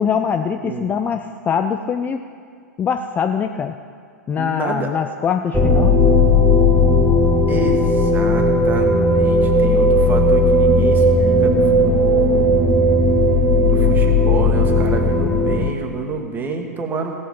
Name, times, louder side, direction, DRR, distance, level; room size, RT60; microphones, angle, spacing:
voice 1, 0.0-2.2 2.8-3.7 4.3-5.9, left 7 dB, 20° left, 7 dB, 0.4 m, -22 dB
voice 2, 4.4-4.9 7.1-12.6 13.7-17.1, right 4 dB, 20° right, 3 dB, 1.6 m, -28 dB
sound 1, 5.5-15.7, left 1 dB, ahead, 1.0 m, -15 dB
16.5 x 7.8 x 5.4 m, 2.2 s
figure-of-eight pair, 100°, 9 cm